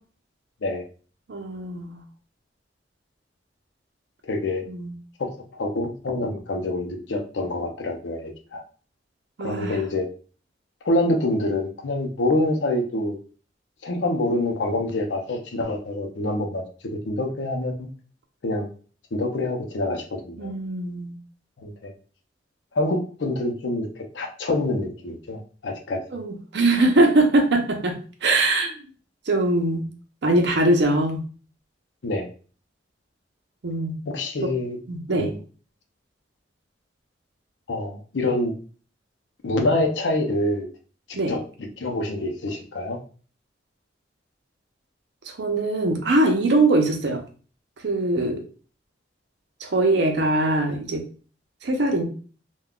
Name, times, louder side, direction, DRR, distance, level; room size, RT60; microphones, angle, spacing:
voice 1, 1.3-2.0 4.7-4.9 9.4-9.8 20.4-21.2 26.1-28.7 29.3-29.8 30.2-31.2 33.6-33.9 34.9-35.3 41.2-41.3 45.3-47.2 47.8-48.4 49.6-51.0 51.6-52.0, right 2 dB, 65° right, 4 dB, 0.6 m, -22 dB
voice 2, 4.3-4.6 5.2-8.6 9.4-10.1 10.8-13.2 13.8-16.6 17.1-17.9 18.4-18.7 19.1-20.5 21.6-21.9 22.7-26.0 32.0-32.3 34.1-34.8 35.1-35.4 37.7-38.5 39.4-40.7 41.1-41.4 41.8-43.0, left 2 dB, 80° left, 3 dB, 0.6 m, -26 dB
3.6 x 2.2 x 2.2 m, 0.40 s
head